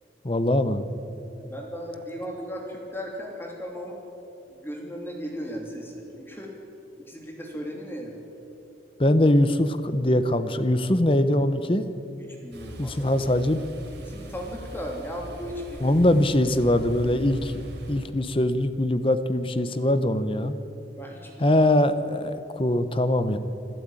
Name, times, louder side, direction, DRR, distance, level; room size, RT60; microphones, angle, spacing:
voice 1, 0.2-0.9 9.0-11.8 12.8-13.6 15.8-17.5 17.9-20.6 21.4-23.4, left 1 dB, 30° left, 11 dB, 1.0 m, -22 dB
voice 2, 1.2-4.0 4.5-6.5 7.0-8.1 12.2-13.4 14.0-16.0 20.4-20.6 21.0-21.6, equal, 10° left, 0 dB, 3.0 m, -37 dB
sound 1, 12.5-18.1, right 1 dB, 65° right, 3.8 m, -41 dB
26.0 x 12.5 x 9.1 m, 2.8 s
head